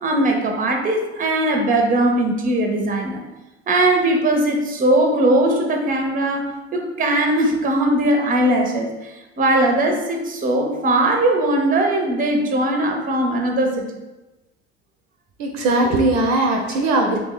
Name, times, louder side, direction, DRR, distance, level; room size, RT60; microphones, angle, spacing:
voice 1, 0.0-3.2 3.7-13.9, right 1 dB, 25° right, 3 dB, 0.7 m, -19 dB
voice 2, 15.4-17.2, right 2 dB, 55° right, 2 dB, 0.6 m, -19 dB
2.9 x 2.7 x 3.8 m, 1.1 s
hypercardioid pair, 65°, 33 cm